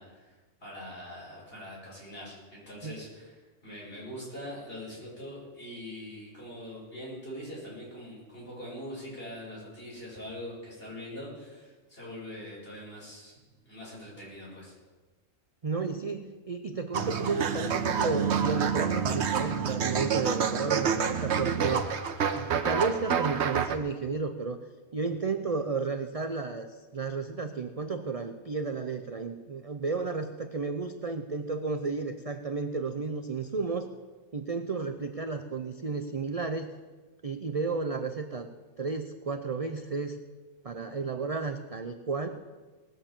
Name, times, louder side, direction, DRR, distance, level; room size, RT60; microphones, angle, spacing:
voice 1, 0.0-13.4 13.7-14.7, left 1 dB, 45° left, -6 dB, 6.2 m, -43 dB
voice 2, 15.6-21.8 22.3-24.6 24.9-33.9 34.3-36.7 37.2-38.5 38.8-40.2 40.6-42.3, right 4 dB, 40° right, 7 dB, 0.6 m, -32 dB
sound 1, 16.9-23.8, right 7 dB, 60° right, 1.1 m, -28 dB
19.0 x 6.7 x 7.4 m, 1.3 s
omnidirectional pair, 1.4 m